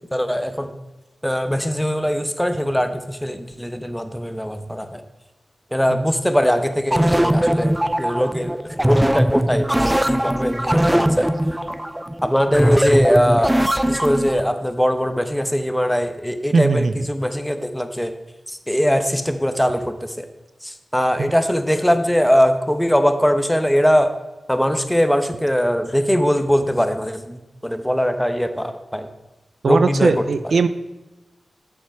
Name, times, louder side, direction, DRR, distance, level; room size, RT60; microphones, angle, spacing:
voice 1, 0.1-0.7 1.2-5.0 5.7-11.3 12.2-18.1 18.5-20.3 20.6-24.1 24.5-29.1 29.6-30.2, equal, 5° left, 8 dB, 1.0 m, -21 dB
sound 1, 6.9-14.4, right 1 dB, 10° right, 0.5 m, -20 dB
voice 2, 16.5-17.1 21.2-21.3 29.6-30.7, right 4 dB, 75° right, 11 dB, 0.5 m, -19 dB
8.4 x 7.4 x 4.5 m, 1.1 s
cardioid pair, 45°, 0 cm